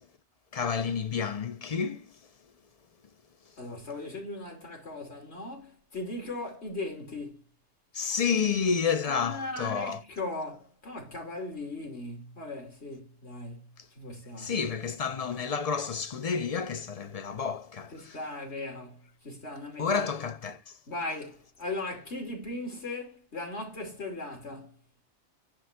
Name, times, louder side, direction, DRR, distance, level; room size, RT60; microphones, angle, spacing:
voice 1, 0.5-2.1 7.9-10.0 14.4-17.9 19.8-20.6, left 6 dB, 35° left, 0.8 m, -30 dB
voice 2, 3.6-7.4 9.0-14.6 17.9-20.0 20.9-24.8, left 2 dB, 70° left, 3.1 m, -38 dB
10.0 x 3.4 x 6.5 m
omnidirectional pair, 1.2 m